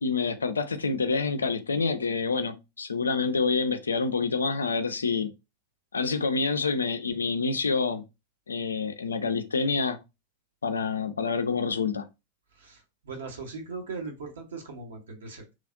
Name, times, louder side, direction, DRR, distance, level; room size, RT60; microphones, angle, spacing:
voice 1, 0.0-5.3 5.9-8.0 8.5-10.0 10.6-12.1, left 4 dB, 75° left, 0.4 m, -27 dB
voice 2, 12.5-15.5, right 4 dB, 65° right, 0.9 m, -39 dB
3.1 x 2.4 x 2.5 m
figure-of-eight pair, 90°, 0 cm